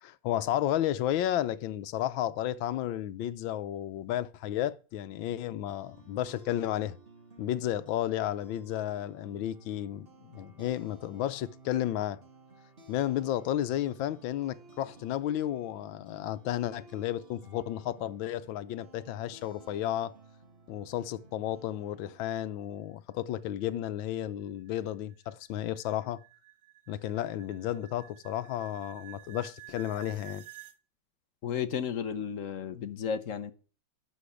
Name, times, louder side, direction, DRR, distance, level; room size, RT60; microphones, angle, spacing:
voice 1, 0.0-6.9 7.4-12.2 12.9-20.1 20.7-26.2 26.9-30.4, left 12 dB, 90° left, 1.5 m, -32 dB
sound 1, 5.4-22.3, right 3 dB, 30° right, 1.9 m, -56 dB
sound 2, 23.6-30.8, right 18 dB, 70° right, 0.7 m, -52 dB
voice 2, 31.4-33.5, left 7 dB, 55° left, 1.0 m, -33 dB
12.0 x 5.2 x 8.5 m
omnidirectional pair, 2.1 m